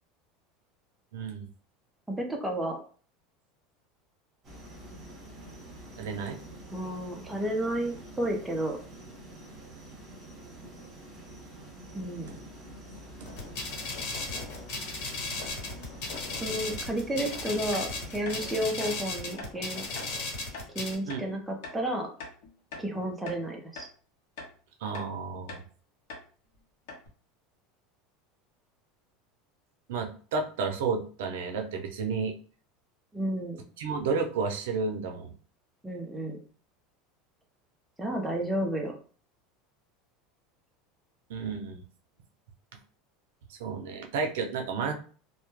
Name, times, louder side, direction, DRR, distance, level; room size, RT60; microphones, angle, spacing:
voice 1, 1.1-1.5 6.0-6.4 13.2-13.3 21.1-21.4 24.8-25.6 29.9-32.4 33.8-35.3 41.3-41.8 43.5-44.9, right 5 dB, 85° right, 4 dB, 0.5 m, -32 dB
voice 2, 2.1-2.8 6.7-8.8 11.9-12.4 16.4-19.9 20.7-22.1 22.8-23.9 33.1-33.6 35.8-36.4 38.0-38.9, right 1 dB, 5° right, 0 dB, 0.4 m, -31 dB
sound 1, 4.4-18.7, equal, 25° right, 0.9 m, -47 dB
sound 2, 13.2-20.9, left 3 dB, 55° left, 1.3 m, -36 dB
sound 3, 17.7-17.9 18.2-18.4 18.8-18.9 19.4-19.5 19.9-20.1 20.5-20.7 21.1-21.2 21.6-21.8 22.2-22.9 23.2-23.4 23.7-23.9 24.4-24.5 24.9-25.1 25.5-25.7 26.1-26.3 26.5-26.6 26.9-27.1, left 3 dB, 75° left, 0.8 m, -42 dB
2.1 x 2.0 x 3.0 m, 0.41 s
supercardioid pair, 165°, 0 cm